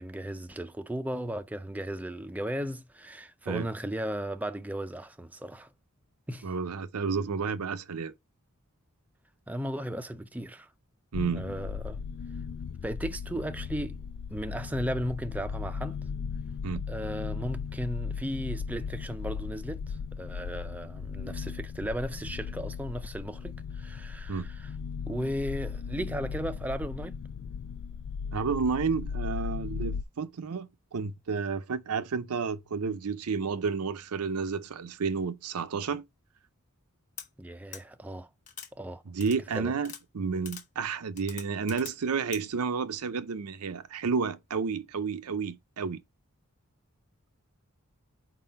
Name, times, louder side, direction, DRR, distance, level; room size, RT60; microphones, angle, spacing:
voice 1, 0.0-5.7 6.3-6.5 9.5-10.7 11.3-12.0 12.8-14.0 14.3-16.0 16.9-24.7 25.1-27.2 37.4-38.3 38.8-39.0 39.5-39.7, equal, 5° right, 0.4 m, -36 dB
voice 2, 6.4-8.1 11.1-11.4 16.6-16.8 24.3-24.5 28.3-36.1 39.1-46.0, right 5 dB, 80° right, 0.6 m, -31 dB
sound 1, 11.1-30.0, left 6 dB, 65° left, 0.3 m, -37 dB
sound 2, 37.2-37.3 37.7-37.8 38.5-38.7 39.2-39.4 39.8-40.0 40.5-40.6 41.2-41.9 42.3-42.4, left 8 dB, 35° left, 1.0 m, -42 dB
4.7 x 3.8 x 5.2 m
head